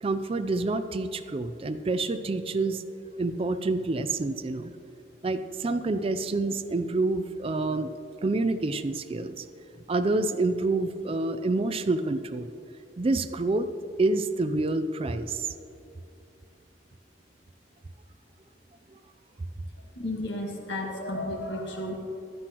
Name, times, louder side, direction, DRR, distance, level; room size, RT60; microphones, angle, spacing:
voice 1, 0.0-2.8 3.2-4.7 5.2-7.9 8.2-9.4 9.9-12.5 13.0-13.7 14.0-15.5 18.9-19.0, right 2 dB, 30° right, 9 dB, 0.4 m, -27 dB
voice 2, 20.0-22.1, left 1 dB, 75° left, 0 dB, 1.8 m, -33 dB
16.0 x 11.5 x 3.0 m, 2.7 s
head